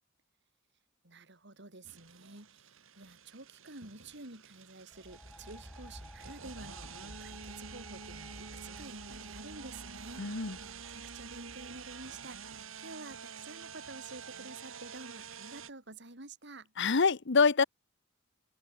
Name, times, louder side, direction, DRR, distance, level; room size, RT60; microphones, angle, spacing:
voice 1, 1.0-16.7, right 2 dB, 60° right, 4.8 m, -50 dB
sound 1, 1.8-15.7, right 6 dB, 75° right, 2.8 m, -48 dB
sound 2, 4.9-12.7, equal, 5° left, 2.0 m, -52 dB
voice 2, 10.2-10.6 16.8-17.6, left 5 dB, 60° left, 0.9 m, -25 dB
head